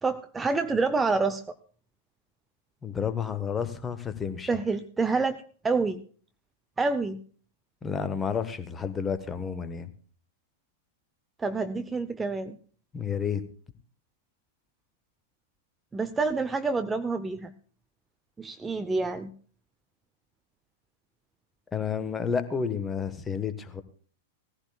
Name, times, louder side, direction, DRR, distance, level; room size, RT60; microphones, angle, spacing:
voice 1, 0.0-1.4 4.5-6.0 6.8-7.2 11.4-12.6 15.9-17.5 18.4-19.3, right 4 dB, 15° right, 10 dB, 0.7 m, -27 dB
voice 2, 2.8-4.5 7.8-9.9 12.9-13.4 21.7-23.8, left 6 dB, 15° left, 11 dB, 1.3 m, -30 dB
17.5 x 15.0 x 2.3 m, 0.43 s
figure-of-eight pair, 95°, 0 cm